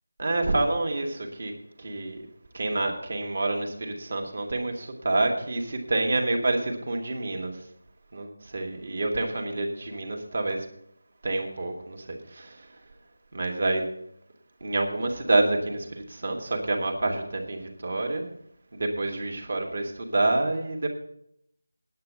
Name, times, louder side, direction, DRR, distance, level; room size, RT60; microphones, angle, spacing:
voice 1, 0.2-1.5 1.8-2.2 2.5-7.5 8.1-10.7 11.2-12.7 13.3-13.9 14.6-18.2 18.7-20.9, right 2 dB, 45° right, 2 dB, 2.4 m, -28 dB
9.4 x 8.5 x 7.6 m, 0.72 s
figure-of-eight pair, 175°, 0 cm